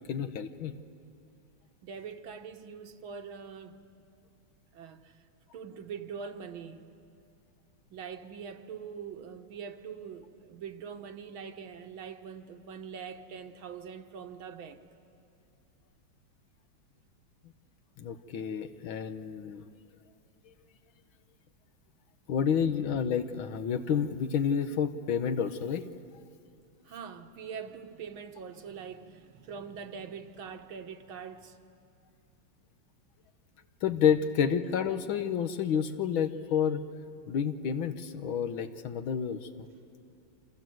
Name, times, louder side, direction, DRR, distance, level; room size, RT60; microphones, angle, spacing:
voice 1, 0.1-0.8 18.0-19.7 22.3-25.8 33.8-36.8 37.3-39.5, left 7 dB, 80° left, 1.8 m, -29 dB
voice 2, 1.8-3.8 4.7-5.2 5.5-6.8 7.9-14.8 26.8-31.6, right 6 dB, 80° right, 2.0 m, -43 dB
28.0 x 26.0 x 7.8 m
omnidirectional pair, 2.2 m